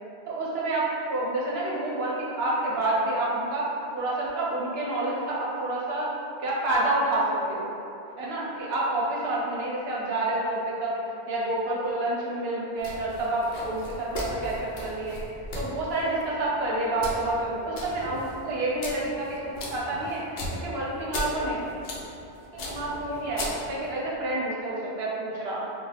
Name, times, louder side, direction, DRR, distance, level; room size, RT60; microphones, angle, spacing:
voice 1, 0.3-3.7 4.0-6.1 6.4-7.7 8.2-10.9 11.3-15.2 15.5-20.2 20.5-21.7 22.5-25.6, right 2 dB, 75° right, -5 dB, 0.8 m, -28 dB
sound 1, 12.8-24.0, left 1 dB, 65° left, 0.7 m, -38 dB
3.1 x 2.3 x 2.3 m, 2.7 s
omnidirectional pair, 1.1 m